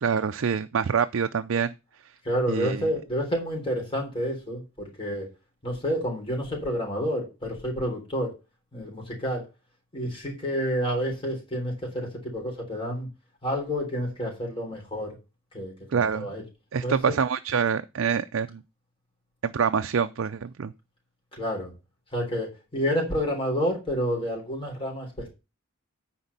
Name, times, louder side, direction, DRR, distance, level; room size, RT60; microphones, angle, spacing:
voice 1, 0.0-1.7 2.5-2.9 15.9-16.3 16.7-18.6 19.4-20.7, right 6 dB, 65° right, 0.4 m, -26 dB
voice 2, 2.3-5.3 5.6-8.3 8.7-9.4 9.9-13.1 13.4-15.1 15.5-16.4 16.8-17.0 21.4-21.7 22.1-25.1, equal, 25° left, 3.5 m, -29 dB
9.8 x 4.3 x 6.8 m
head